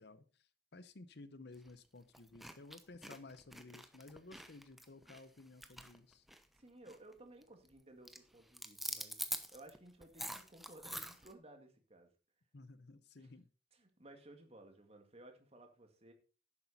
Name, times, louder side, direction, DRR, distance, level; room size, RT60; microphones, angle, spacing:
voice 1, 0.0-6.3 12.5-13.5, left 2 dB, 65° left, 14 dB, 0.9 m, -55 dB
sound 1, 1.5-1.7 2.1-6.6 6.9-7.1 7.4-7.8 8.1-11.3, equal, ahead, 0.9 m, -46 dB
voice 2, 6.5-9.2 9.5-12.1 13.2-13.3 13.8-16.1, right 1 dB, 35° right, 5 dB, 2.2 m, -58 dB
11.5 x 8.6 x 4.2 m, 0.34 s
head